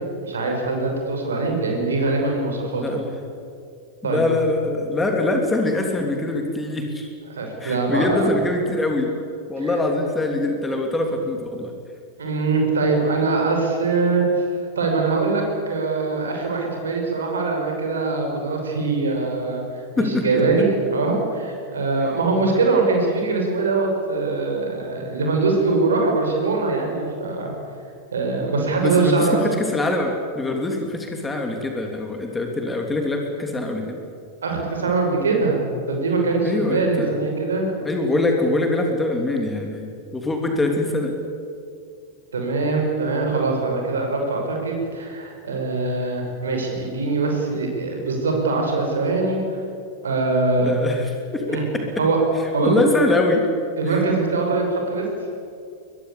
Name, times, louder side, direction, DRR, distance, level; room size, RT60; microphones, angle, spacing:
voice 1, 0.2-2.8 4.0-4.2 7.3-8.3 9.6-9.7 12.2-14.4 14.8-27.5 28.1-29.4 34.4-37.7 42.3-49.6 50.0-50.8 51.5-51.6 52.0-52.2 52.5-52.8 53.8-55.0, right 3 dB, 70° right, 2 dB, 6.1 m, -22 dB
voice 2, 2.7-3.1 4.0-7.1 7.6-9.1 9.5-11.7 20.0-20.6 28.8-34.0 36.4-37.2 37.8-39.9 40.1-41.1 50.6-51.8 52.6-53.4 53.9-54.0, left 2 dB, 10° left, 3 dB, 3.1 m, -23 dB
23.5 x 21.5 x 8.6 m, 2.4 s
figure-of-eight pair, 90°, 0 cm